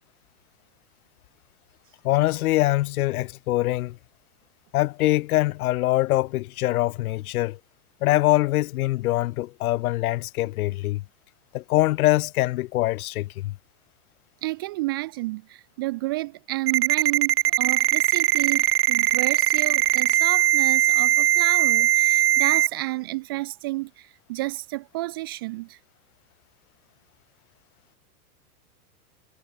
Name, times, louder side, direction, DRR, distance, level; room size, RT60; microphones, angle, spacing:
voice 1, 2.0-4.0 4.7-7.6 8.0-11.0 11.5-13.5, left 17 dB, 70° left, 0.7 m, -23 dB
voice 2, 14.4-25.8, right 20 dB, 20° right, 0.3 m, -31 dB
Ringtone, 16.7-22.7, right 14 dB, 85° right, 1.3 m, -20 dB
supercardioid pair, 155°, 46 cm